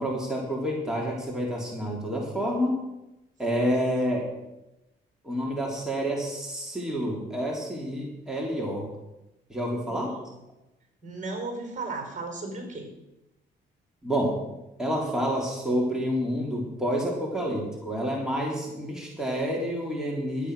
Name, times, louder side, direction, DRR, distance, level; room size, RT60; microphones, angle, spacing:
voice 1, 0.0-2.8 3.4-4.3 5.2-8.9 9.5-10.1 14.0-14.3 14.8-20.5, equal, 5° right, -3 dB, 3.2 m, -28 dB
voice 2, 9.9-10.2 11.0-12.9, right 3 dB, 40° right, 3 dB, 4.5 m, -35 dB
12.0 x 9.1 x 6.2 m, 0.94 s
cardioid pair, 90°, 20 cm